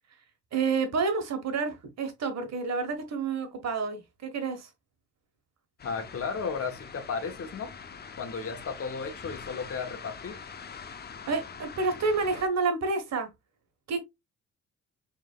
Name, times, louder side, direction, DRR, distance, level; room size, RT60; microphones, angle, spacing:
voice 1, 0.5-4.7 11.3-13.3 13.9-14.0, right 4 dB, 60° right, 1.4 m, -29 dB
voice 2, 5.8-7.7 8.2-10.4, left 5 dB, 50° left, 1.3 m, -34 dB
sound 1, 5.8-12.5, left 6 dB, 35° left, 0.6 m, -44 dB
4.8 x 3.5 x 2.4 m
cardioid pair, 90°, 30 cm